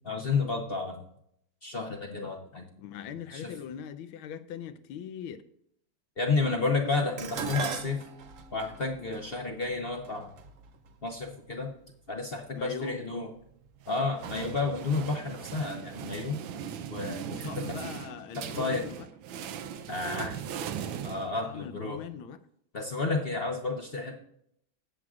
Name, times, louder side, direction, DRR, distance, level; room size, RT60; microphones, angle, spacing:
voice 1, 0.0-1.0 1.6-2.6 3.3-3.5 6.2-8.0 8.5-10.3 11.0-11.7 12.1-13.3 13.9-16.4 16.9-17.5 18.4-18.8 19.9-20.4 21.0-22.0 22.7-24.2, left 3 dB, 45° left, 2 dB, 0.7 m, -31 dB
voice 2, 2.8-5.4 6.4-6.9 12.5-13.0 17.3-19.1 21.4-22.4, left 8 dB, 90° left, 12 dB, 1.5 m, -41 dB
Dishes pots and pans, 7.2-11.5 12.4-12.8 13.2-14.0 14.3-14.4, right 6 dB, 60° right, 0.8 m, -39 dB
sound 1, 13.8-21.8, right 8 dB, 80° right, 1.5 m, -39 dB
18.0 x 7.6 x 2.4 m, 0.71 s
omnidirectional pair, 2.2 m